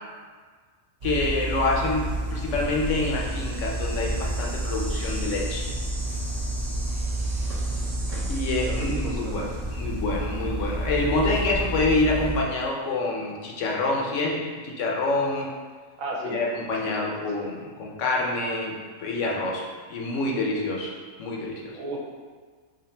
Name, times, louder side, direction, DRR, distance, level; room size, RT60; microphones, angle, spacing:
voice 1, 1.0-5.6 8.3-15.5 16.2-21.8, left 2 dB, 70° left, -1 dB, 0.9 m, -27 dB
sound 1, 1.0-12.4, right 1 dB, 60° right, 0.4 m, -29 dB
voice 2, 8.6-9.5 16.0-16.4 16.8-17.1 17.4-17.5 21.7-22.0, right 2 dB, 75° right, -1 dB, 1.0 m, -35 dB
3.1 x 2.4 x 4.0 m, 1.5 s
omnidirectional pair, 1.4 m